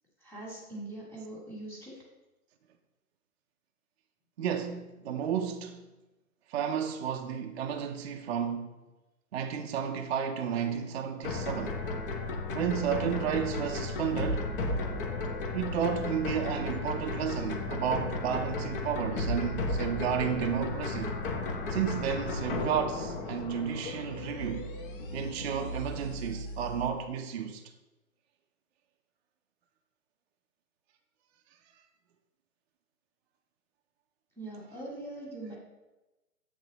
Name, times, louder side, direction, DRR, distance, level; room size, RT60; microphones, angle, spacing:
voice 1, 0.2-2.0 34.4-35.6, right 2 dB, 5° left, 1.6 m, -42 dB
voice 2, 4.4-5.9 6.5-8.7 9.3-11.8 12.5-14.5 15.5-21.2 21.7-24.7 25.1-27.6, right 8 dB, 45° right, 0.5 m, -32 dB
sound 1, 11.2-26.9, left 2 dB, 35° left, 0.8 m, -34 dB
8.2 x 3.2 x 3.9 m
hypercardioid pair, 135°, 45 cm